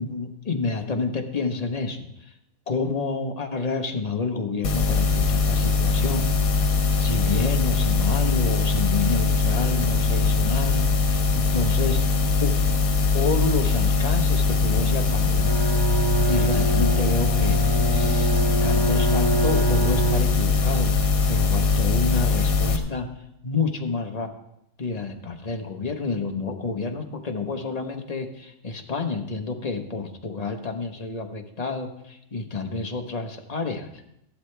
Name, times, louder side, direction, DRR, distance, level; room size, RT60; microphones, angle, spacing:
voice 1, 0.0-2.3 2.7-6.2 7.0-12.5 13.1-15.5 16.2-23.1 23.4-24.3 24.8-33.9, left 4 dB, 30° left, 4 dB, 1.0 m, -29 dB
sound 1, 4.6-22.8, left 4 dB, 85° left, 1.4 m, -21 dB
Bowed string instrument, 15.3-20.8, right 3 dB, 45° right, 3.3 m, -27 dB
14.0 x 11.5 x 3.3 m, 0.78 s
omnidirectional pair, 1.5 m